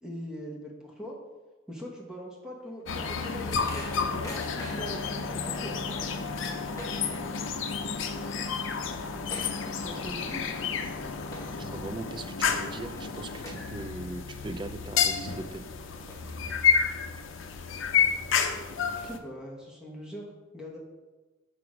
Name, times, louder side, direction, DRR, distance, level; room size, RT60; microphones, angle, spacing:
voice 1, 0.0-1.2 1.7-5.8 9.8-10.4 19.0-20.3 20.5-20.8, equal, 5° right, -2 dB, 1.0 m, -41 dB
sound 1, 2.6-5.0 5.4-5.5 5.8-7.5 7.8-8.2 8.5-8.6 8.8-10.2 10.6-10.9 11.3-11.8 12.3-12.4 13.0-13.1 13.4-14.2 14.6-14.7 15.4-15.5 15.9-16.8, left 1 dB, 15° left, 1.2 m, -44 dB
sound 2, 2.9-19.2, left 6 dB, 65° left, 0.5 m, -30 dB
voice 2, 11.6-15.7, right 2 dB, 25° right, 7 dB, 0.4 m, -39 dB
6.1 x 4.9 x 4.8 m, 1.2 s
head